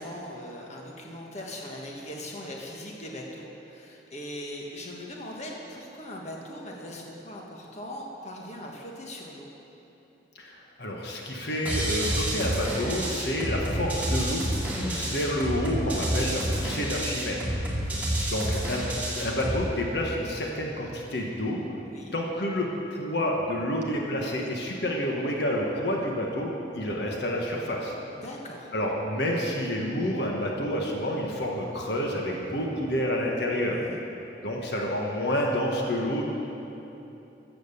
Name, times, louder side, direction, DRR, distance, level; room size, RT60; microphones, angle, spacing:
voice 1, 0.0-9.5 17.7-18.0 21.8-22.2 28.1-28.7 33.7-34.0, left 1 dB, 40° left, -1 dB, 1.5 m, -40 dB
voice 2, 10.4-17.5 18.3-18.9 19.2-21.6 22.1-27.9 28.7-33.8 34.4-36.2, equal, 65° left, -1 dB, 1.4 m, -29 dB
sound 1, 11.6-19.6, right 1 dB, 10° right, 2.4 m, -29 dB
14.5 x 7.8 x 6.8 m, 3.0 s
head